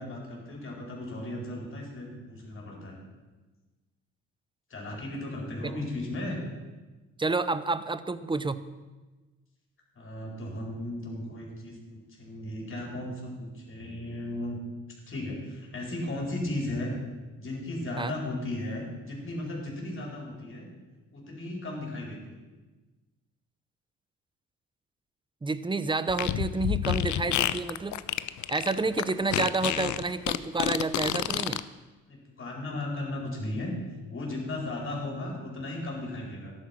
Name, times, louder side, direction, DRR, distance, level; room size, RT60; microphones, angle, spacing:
voice 1, 0.0-3.0 4.7-6.4 9.9-14.6 15.1-16.9 17.4-20.7 21.1-22.4 32.1-33.7 34.1-36.5, left 1 dB, 45° left, -1 dB, 4.7 m, -36 dB
voice 2, 7.2-8.7 18.0-18.1 25.4-28.0 28.5-31.6, right 3 dB, 15° right, 14 dB, 0.8 m, -29 dB
Fart, 26.1-31.6, left 13 dB, 70° left, 0.7 m, -29 dB
13.5 x 11.0 x 6.0 m, 1.2 s
cardioid pair, 90°, 30 cm